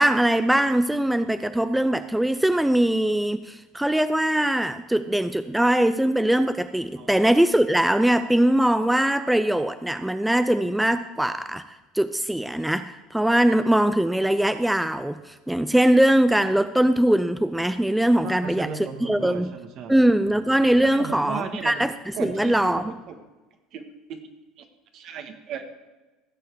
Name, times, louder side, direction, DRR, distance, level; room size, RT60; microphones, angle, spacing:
voice 1, 0.0-11.6 11.9-19.5 19.9-22.9, right 1 dB, 5° right, 11 dB, 0.4 m, -21 dB
voice 2, 18.2-20.0 20.8-21.7 22.2-22.5 23.1-23.2 23.7-23.8 24.1-24.2 24.9-25.7, right 7 dB, 55° right, 7 dB, 1.5 m, -35 dB
15.5 x 6.7 x 4.7 m, 1.2 s
hypercardioid pair, 80°, 0 cm